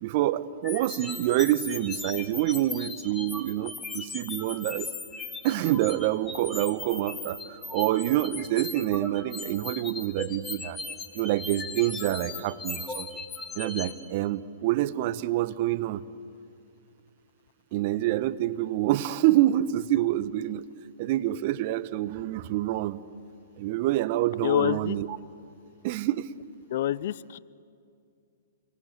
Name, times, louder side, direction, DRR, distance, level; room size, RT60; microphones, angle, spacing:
voice 1, 0.0-4.9 5.4-10.8 11.1-13.1 13.5-16.0 17.7-20.7 21.0-23.0 23.6-25.1 25.8-26.3, right 14 dB, 45° right, 14 dB, 1.0 m, -27 dB
sound 1, 0.6-13.9, left 3 dB, 15° left, 2.4 m, -38 dB
voice 2, 24.4-25.0 26.7-27.4, left 11 dB, 55° left, 21 dB, 0.6 m, -26 dB
29.0 x 23.5 x 8.2 m, 2.5 s
hypercardioid pair, 120°, 0 cm